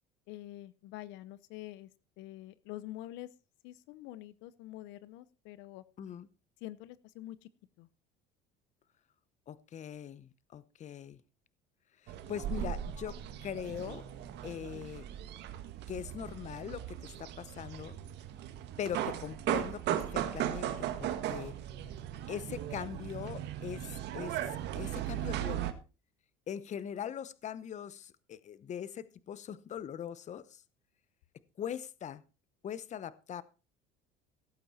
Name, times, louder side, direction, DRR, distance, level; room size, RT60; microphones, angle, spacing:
voice 1, 0.3-1.9 2.2-3.3 3.6-5.8 6.6-7.5 7.8-7.9, left 15 dB, 75° left, 17 dB, 0.8 m, -46 dB
voice 2, 9.5-11.2 12.0-14.0 14.4-15.0 15.9-18.0 18.8-21.5 22.3-25.7 26.5-30.6 31.6-32.2 32.6-33.4, left 9 dB, 40° left, 17 dB, 0.9 m, -41 dB
sound 1, 12.1-25.7, right 11 dB, 60° right, 1.7 m, -37 dB
17.0 x 8.7 x 4.3 m, 0.32 s
cardioid pair, 110°, 19 cm